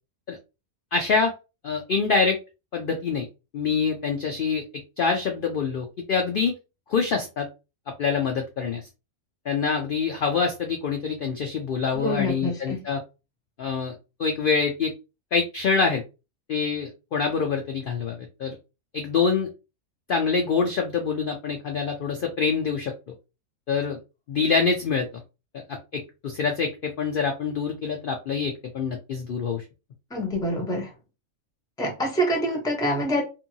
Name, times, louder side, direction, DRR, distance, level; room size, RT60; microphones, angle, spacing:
voice 1, 0.9-1.3 1.6-2.4 2.7-3.2 3.5-4.6 5.0-6.6 6.9-7.5 8.0-8.8 9.5-13.0 13.6-13.9 14.2-14.9 15.3-16.0 16.5-18.6 18.9-19.5 20.1-22.9 23.7-24.0 24.3-25.1 25.9-29.6, left 5 dB, 70° left, 0.5 m, -25 dB
voice 2, 11.9-12.8 30.1-30.9 31.8-33.2, equal, 5° left, 0.5 m, -26 dB
2.8 x 2.6 x 2.6 m
omnidirectional pair, 1.5 m